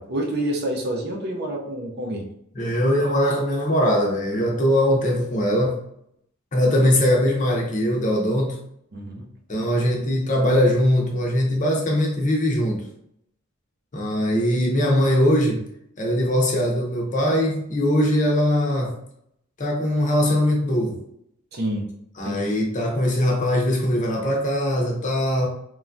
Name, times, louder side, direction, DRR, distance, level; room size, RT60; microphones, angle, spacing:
voice 1, 0.0-2.3 8.9-9.3 21.5-21.9 22.2-22.4, right 1 dB, 50° right, 1 dB, 0.5 m, -28 dB
voice 2, 2.6-5.8 6.5-8.6 9.5-12.8 13.9-15.6 16.0-18.9 19.6-21.0 22.2-25.5, equal, 35° left, 0 dB, 0.6 m, -21 dB
3.1 x 2.3 x 2.5 m, 0.73 s
head